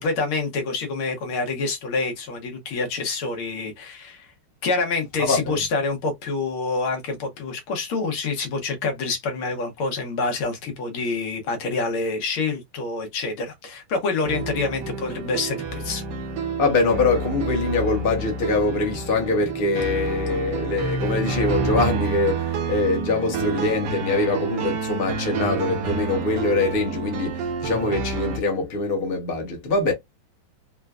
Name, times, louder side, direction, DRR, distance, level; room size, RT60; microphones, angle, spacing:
voice 1, 0.0-4.3 4.6-16.0, left 3 dB, 75° left, 1.8 m, -27 dB
voice 2, 5.2-5.6 16.6-29.9, left 3 dB, 40° left, 0.9 m, -23 dB
sound 1, 14.2-28.4, right 4 dB, 65° right, 1.2 m, -28 dB
4.3 x 2.2 x 2.4 m
omnidirectional pair, 2.4 m